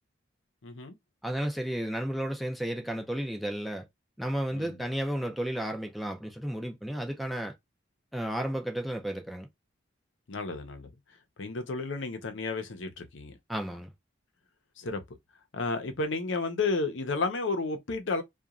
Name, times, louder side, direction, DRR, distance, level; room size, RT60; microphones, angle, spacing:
voice 1, 0.6-1.0 4.5-4.8 10.3-10.9 11.4-13.4 14.8-15.0 15.5-18.2, left 3 dB, 80° left, 0.7 m, -32 dB
voice 2, 1.2-3.8 4.2-7.5 8.1-9.5 13.5-13.9, right 1 dB, ahead, 0.4 m, -33 dB
2.9 x 2.3 x 2.4 m
head